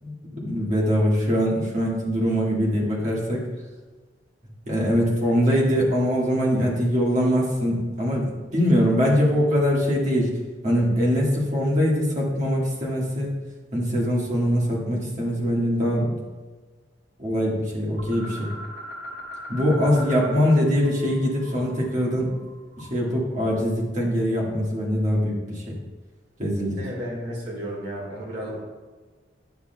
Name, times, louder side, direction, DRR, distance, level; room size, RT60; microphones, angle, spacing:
voice 1, 0.0-3.4 4.7-10.3 10.6-13.3 13.7-16.1 17.2-18.5 19.5-22.3 22.8-25.7 26.4-26.8, equal, 40° right, -4 dB, 1.7 m, -22 dB
sound 1, 18.0-20.6 20.8-23.1, equal, 45° left, 1.4 m, -39 dB
voice 2, 26.8-28.6, equal, 60° right, -3 dB, 1.7 m, -33 dB
9.6 x 6.1 x 2.2 m, 1.3 s
head